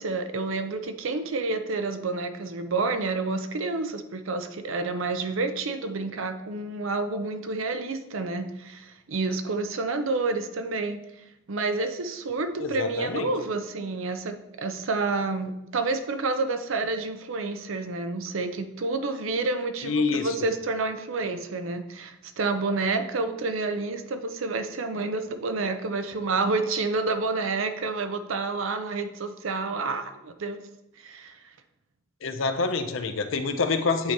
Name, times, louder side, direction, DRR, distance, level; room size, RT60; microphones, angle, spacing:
voice 1, 0.0-11.0 11.5-30.6 31.0-31.4, right 3 dB, 75° right, 9 dB, 0.6 m, -29 dB
voice 2, 12.6-13.3 19.8-20.5 32.2-34.1, left 4 dB, 70° left, 8 dB, 0.6 m, -27 dB
8.5 x 2.9 x 4.7 m, 0.89 s
head